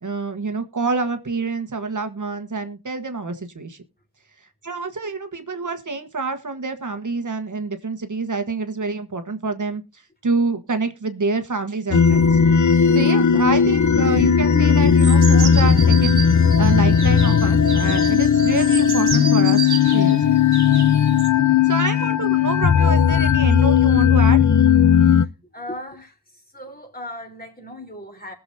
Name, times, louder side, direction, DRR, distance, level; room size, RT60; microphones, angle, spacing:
voice 1, 0.0-3.8 4.6-12.4 12.9-20.3 21.6-24.5, right 3 dB, 50° right, 8 dB, 1.4 m, -27 dB
sound 1, 11.9-25.3, left 7 dB, 50° left, 0.6 m, -16 dB
sound 2, 15.0-21.3, right 6 dB, 85° right, 1.4 m, -31 dB
voice 2, 25.5-26.1 26.5-28.3, left 1 dB, 25° left, 4 dB, 3.5 m, -37 dB
20.5 x 7.1 x 2.7 m, 0.27 s
wide cardioid pair, 60°, 38 cm